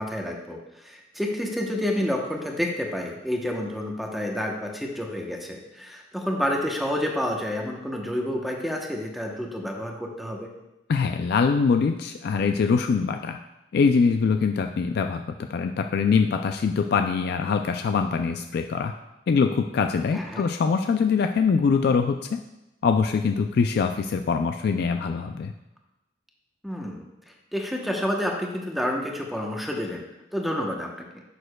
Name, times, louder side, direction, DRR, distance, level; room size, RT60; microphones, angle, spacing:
voice 1, 0.0-10.5 20.1-20.4 26.6-30.1 30.3-31.2, left 1 dB, ahead, 0 dB, 0.8 m, -29 dB
voice 2, 10.9-13.4 13.7-18.9 19.3-22.4 22.8-25.5, left 5 dB, 55° left, 6 dB, 0.3 m, -23 dB
11.0 x 6.6 x 2.2 m, 0.97 s
head